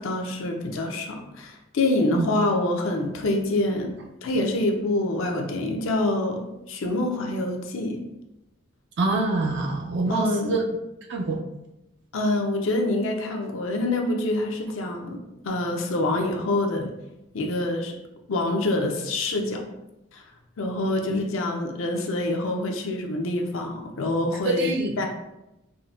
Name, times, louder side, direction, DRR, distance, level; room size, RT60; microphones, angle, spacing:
voice 1, 0.0-3.9 4.2-8.0 10.1-10.5 12.1-15.2 15.4-16.9 17.3-17.9 18.3-19.6 20.1-20.2 20.6-24.7 25.0-25.1, left 2 dB, 75° left, 2 dB, 0.5 m, -26 dB
voice 2, 9.0-10.6 11.1-11.4 24.5-25.1, right 2 dB, 55° right, 2 dB, 0.4 m, -25 dB
3.7 x 2.1 x 2.4 m, 0.92 s
head